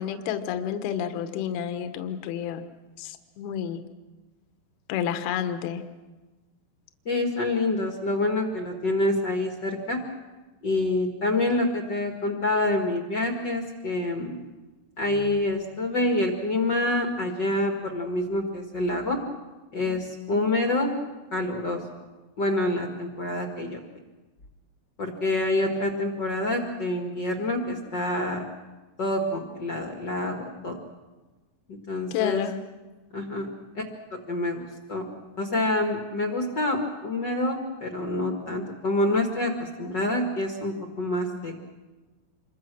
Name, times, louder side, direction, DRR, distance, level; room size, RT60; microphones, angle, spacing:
voice 1, 0.0-2.6 3.0-3.8 4.9-5.8 32.1-32.6, left 9 dB, 70° left, 8 dB, 2.9 m, -30 dB
voice 2, 7.0-10.0 10.6-14.3 15.0-19.2 19.7-20.9 21.3-21.8 22.4-23.8 25.0-28.4 29.0-30.8 31.9-32.4 33.1-33.8 34.3-35.0 35.4-41.5, left 2 dB, 45° left, 3 dB, 1.5 m, -27 dB
27.5 x 23.5 x 6.3 m, 1.2 s
omnidirectional pair, 5.0 m